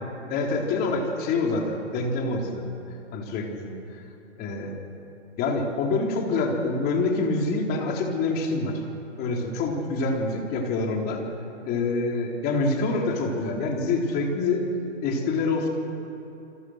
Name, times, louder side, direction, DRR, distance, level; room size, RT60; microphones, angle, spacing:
voice 1, 0.3-2.7 3.1-4.0 4.4-4.8 5.4-8.8 9.2-11.2 11.7-14.6 15.0-15.7, left 3 dB, 25° left, 1 dB, 3.8 m, -26 dB
28.5 x 25.0 x 6.5 m, 2.8 s
hypercardioid pair, 140°, 37 cm